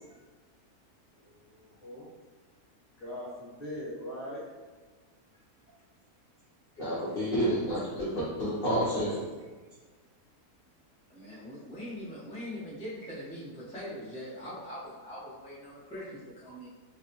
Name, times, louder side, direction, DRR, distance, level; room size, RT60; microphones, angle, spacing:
voice 1, 1.2-2.0 3.0-4.4 16.4-16.5, equal, 30° left, -8 dB, 1.1 m, -41 dB
voice 2, 6.8-9.2, equal, 55° left, -8 dB, 0.6 m, -29 dB
voice 3, 11.1-16.7, equal, 10° left, -9 dB, 0.3 m, -42 dB
3.5 x 2.1 x 2.9 m, 1.3 s
omnidirectional pair, 1.7 m